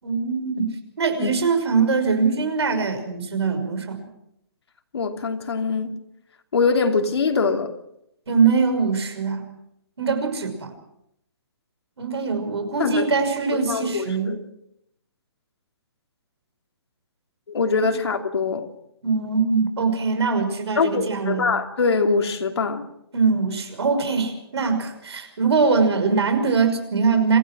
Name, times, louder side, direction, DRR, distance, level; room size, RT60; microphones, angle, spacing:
voice 1, 0.0-4.1 8.3-9.4 10.0-10.7 12.0-14.4 19.0-21.6 23.1-27.4, right 5 dB, 85° right, 5.9 m, -22 dB
voice 2, 4.9-5.9 6.5-7.7 12.8-13.0 13.5-14.4 17.5-18.7 20.8-22.9, left 4 dB, 80° left, 3.0 m, -23 dB
27.0 x 16.0 x 6.2 m
hypercardioid pair, 175°, 13 cm